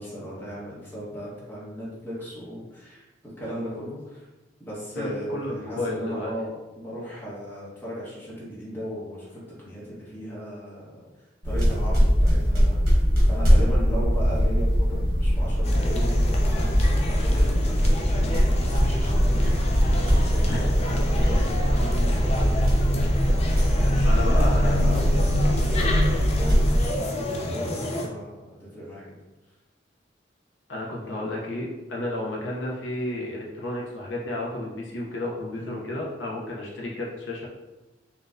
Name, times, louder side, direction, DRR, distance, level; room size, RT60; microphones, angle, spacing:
voice 1, 0.0-3.0 3.4-4.2 4.6-10.9 11.4-13.0 13.3-19.4 19.8-23.1 23.7-25.2 25.5-27.1 27.4-29.1 35.5-35.8, equal, 10° left, -8 dB, 1.0 m, -37 dB
voice 2, 4.9-6.3 20.5-20.7 24.0-24.8 30.7-37.5, left 1 dB, 85° left, -3 dB, 0.6 m, -32 dB
sound 1, 11.4-26.9, equal, 55° right, 1.0 m, -21 dB
sound 2, 15.6-28.1, left 1 dB, 35° left, 0.4 m, -29 dB
3.9 x 2.2 x 2.5 m, 1.1 s
head